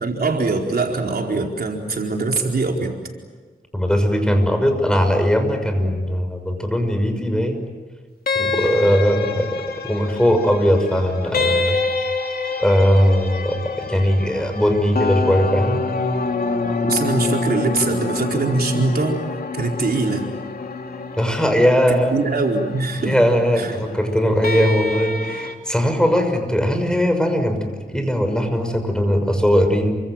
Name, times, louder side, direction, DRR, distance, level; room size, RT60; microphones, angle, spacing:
voice 1, 0.0-2.9 5.8-6.0 16.8-19.2 19.5-20.3 21.9-23.1 23.6-23.8, right 3 dB, 65° right, 1 dB, 4.5 m, -22 dB
voice 2, 3.7-7.6 8.3-9.5 9.9-11.8 12.6-15.8 21.2-22.1 23.0-29.9, equal, 5° left, 6 dB, 6.1 m, -19 dB
sound 1, 8.3-25.5, left 3 dB, 60° left, 2.9 m, -26 dB
29.5 x 25.5 x 7.7 m, 1.4 s
wide cardioid pair, 80°, 17 cm